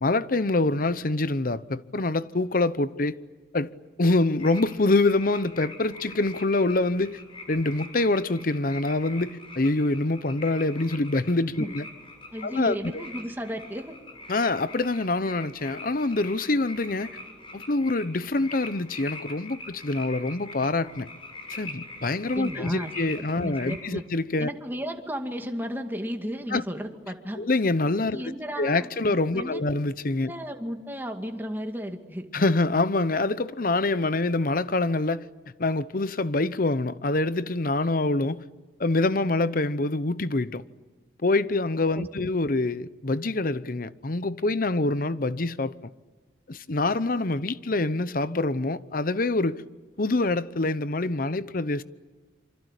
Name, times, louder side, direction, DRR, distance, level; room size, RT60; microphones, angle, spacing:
voice 1, 0.0-3.2 3.5-3.7 4.0-7.2 7.5-11.8 12.4-13.0 14.3-17.1 17.5-21.1 21.5-24.5 26.5-26.6 27.4-28.3 28.6-30.3 32.3-35.2 35.6-38.4 38.8-40.6 41.2-45.7 46.5-49.6 50.0-51.8, left 2 dB, 50° left, 0.9 m, -25 dB
sound 1, 4.4-23.8, left 2 dB, 30° left, 6.4 m, -43 dB
voice 2, 12.3-14.0 22.2-22.9 23.3-24.0 24.4-27.4 28.1-28.9 29.3-29.6 30.3-32.3 41.9-42.1, equal, 10° right, 2.1 m, -34 dB
27.5 x 25.5 x 8.3 m
head